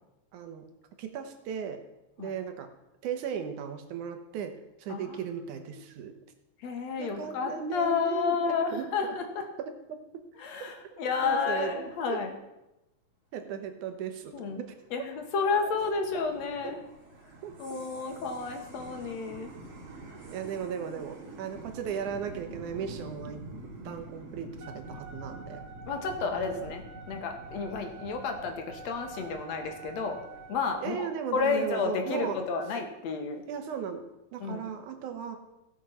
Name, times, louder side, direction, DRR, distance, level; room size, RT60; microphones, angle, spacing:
voice 1, 0.3-0.7 1.0-1.8 2.2-2.7 3.0-4.5 4.8-6.1 7.0-9.1 11.2-12.2 13.3-14.3 14.6-14.7 16.6-16.8 17.4-17.8 20.3-23.5 23.8-25.6 26.2-26.6 30.8-32.4 33.5-34.0 34.3-35.4, right 7 dB, 90° right, 7 dB, 2.6 m, -36 dB
voice 2, 6.6-9.5 10.4-12.3 14.3-14.6 14.9-16.8 17.6-19.5 25.9-30.2 30.5-31.1 31.3-33.4 34.4-34.6, left 5 dB, 65° left, 5 dB, 2.4 m, -31 dB
sound 1, 14.5-31.0, right 2 dB, 55° right, 3.0 m, -47 dB
Wind instrument woodwind instrument, 24.6-30.7, right 4 dB, 30° right, 1.7 m, -48 dB
16.5 x 6.4 x 5.7 m, 0.94 s
omnidirectional pair, 3.4 m